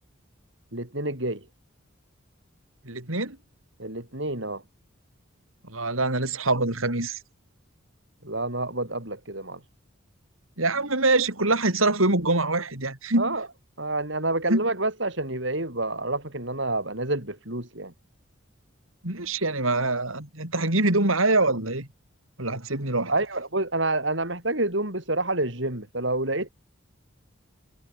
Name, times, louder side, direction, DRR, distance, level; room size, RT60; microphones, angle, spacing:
voice 1, 0.7-1.4 3.8-4.6 8.2-9.6 13.2-13.5 13.8-17.9 23.1-26.5, right 2 dB, 60° right, 6.1 m, -28 dB
voice 2, 2.8-3.4 5.6-7.2 10.6-13.3 14.5-14.7 19.0-21.9 22.4-23.1, right 2 dB, 80° right, 5.8 m, -24 dB
head